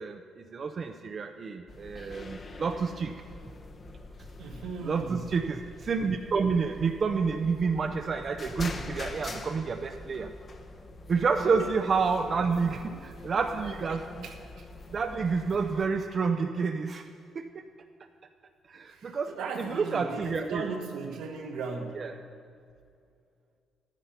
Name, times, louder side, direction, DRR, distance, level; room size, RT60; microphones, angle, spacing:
voice 1, 0.0-3.1 4.8-10.3 11.1-14.3 14.9-17.5 18.7-20.7 21.9-22.2, right 5 dB, 45° right, 6 dB, 0.5 m, -29 dB
sound 1, 1.7-15.9, left 2 dB, 40° left, 1.0 m, -44 dB
voice 2, 4.4-5.2 12.9-13.0 14.2-14.3 18.9-22.0, right 4 dB, 85° right, 2 dB, 1.5 m, -37 dB
12.0 x 9.8 x 5.6 m, 2.4 s
cardioid pair, 90°, 0 cm